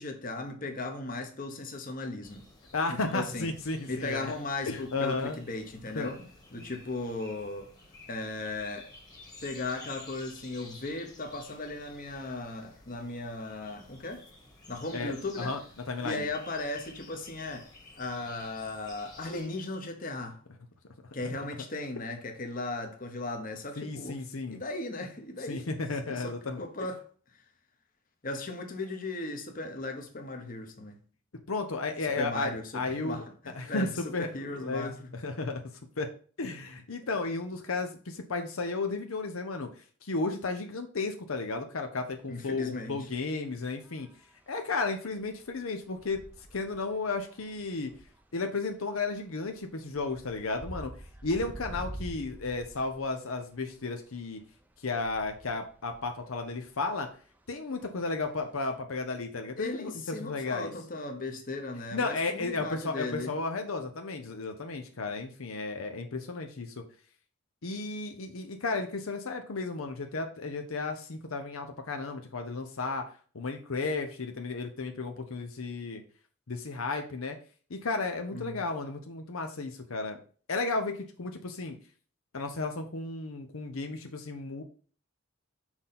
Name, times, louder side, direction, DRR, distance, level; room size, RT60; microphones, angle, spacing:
voice 1, 0.0-2.5 2.9-3.5 3.9-7.7 8.1-8.9 9.4-14.3 14.7-15.6 16.0-20.4 21.1-24.2 24.5-25.7 26.0-27.0 28.2-31.0 32.2-35.1 42.3-43.1 59.6-63.3 78.3-78.6, left 2 dB, 40° left, 1.1 m, -37 dB
sound 1, 2.2-19.5, left 2 dB, 20° left, 1.5 m, -52 dB
voice 2, 2.7-4.3 4.7-5.4 5.9-6.1 14.9-15.6 15.9-16.3 23.8-24.6 25.5-26.6 31.5-33.2 33.5-34.9 35.2-35.6 36.0-36.1 36.4-39.7 40.0-44.1 44.5-46.2 46.5-47.9 48.3-50.9 51.2-54.4 54.8-57.1 57.5-60.7 61.9-66.8 67.6-73.0 73.3-76.0 76.5-77.4 77.7-80.2 80.5-81.8 82.3-84.6, left 3 dB, 80° left, 0.8 m, -33 dB
sound 2, 42.0-42.1 42.5-42.8 43.8-44.3 44.8-54.0 54.3-58.8, right 1 dB, 10° right, 0.5 m, -47 dB
6.2 x 3.8 x 5.8 m
head